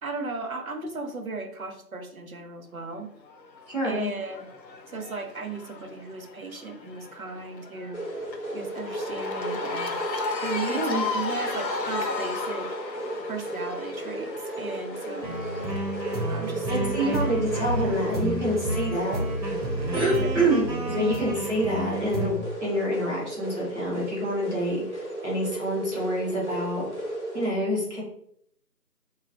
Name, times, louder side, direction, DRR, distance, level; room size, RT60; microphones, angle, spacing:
voice 1, 0.0-3.1 3.8-4.5 4.9-8.1 8.5-10.0 10.4-12.8 13.3-15.4 16.1-17.2 19.1-19.2 20.2-20.3 27.6-27.7, right 3 dB, 60° right, 5 dB, 0.5 m, -36 dB
Cheering / Crowd, 3.2-18.5, left 3 dB, 85° left, 0.7 m, -36 dB
voice 2, 3.7-4.1 10.7-11.0 16.7-19.6 19.9-26.9 27.3-28.0, right 1 dB, 45° right, -6 dB, 1.2 m, -27 dB
sound 1, 7.9-27.5, right 1 dB, 45° left, 0.7 m, -35 dB
sound 2, 15.2-22.3, right 1 dB, 80° right, 1.0 m, -30 dB
3.0 x 2.2 x 2.6 m, 0.68 s
figure-of-eight pair, 175°, 50 cm